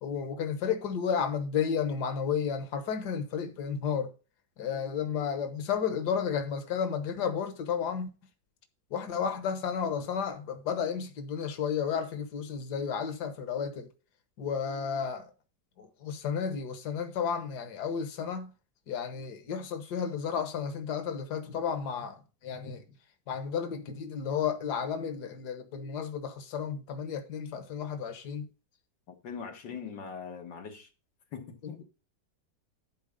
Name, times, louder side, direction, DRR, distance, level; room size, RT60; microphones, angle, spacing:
voice 1, 0.0-4.1 4.6-8.1 8.9-13.9 14.4-15.3 15.8-18.5 18.9-22.8 23.3-28.5 31.6-31.8, left 7 dB, 70° left, 1.8 m, -32 dB
voice 2, 29.1-30.9 31.3-31.8, left 6 dB, 90° left, 2.1 m, -41 dB
11.5 x 4.6 x 5.2 m
omnidirectional pair, 1.9 m